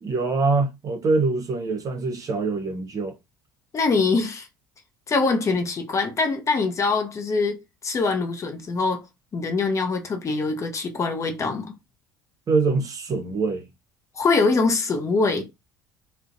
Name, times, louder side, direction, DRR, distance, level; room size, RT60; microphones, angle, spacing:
voice 1, 0.0-3.2 12.5-13.7, right 3 dB, 35° right, 0.6 m, -24 dB
voice 2, 3.7-4.5 5.1-9.0 9.3-11.7 14.2-15.5, left 4 dB, 30° left, 0.5 m, -23 dB
2.5 x 2.0 x 2.5 m
hypercardioid pair, 65°, 10 cm